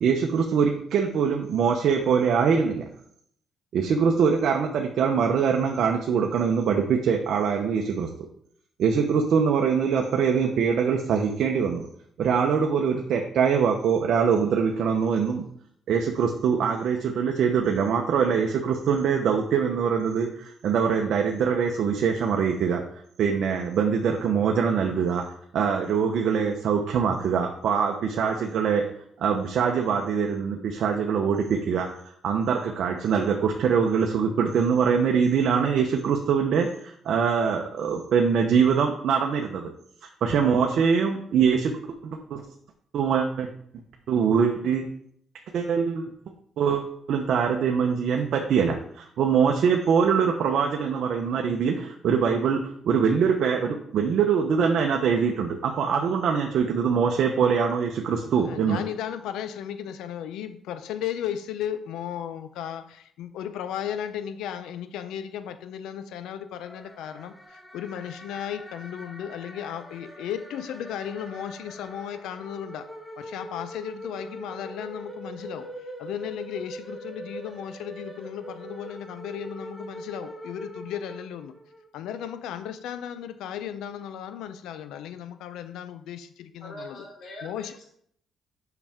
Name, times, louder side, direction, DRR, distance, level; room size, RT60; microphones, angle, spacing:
voice 1, 0.0-2.8 3.7-8.1 8.8-11.9 12.2-15.5 15.9-22.8 23.2-25.2 25.5-28.8 29.2-31.9 32.2-39.7 40.2-41.7 42.0-42.4 42.9-43.5 44.1-44.9 45.5-46.0 46.6-58.8, right 6 dB, 70° right, 2 dB, 1.0 m, -23 dB
voice 2, 58.4-72.9 73.2-81.6 81.9-87.0 87.4-87.8, left 9 dB, 90° left, 11 dB, 0.6 m, -35 dB
sound 1, 66.6-81.9, right 1 dB, 5° left, 1.6 m, -42 dB
voice 3, 86.6-87.8, left 1 dB, 75° left, -2 dB, 3.1 m, -42 dB
8.1 x 5.9 x 3.7 m, 0.66 s
cardioid pair, 90°, 0 cm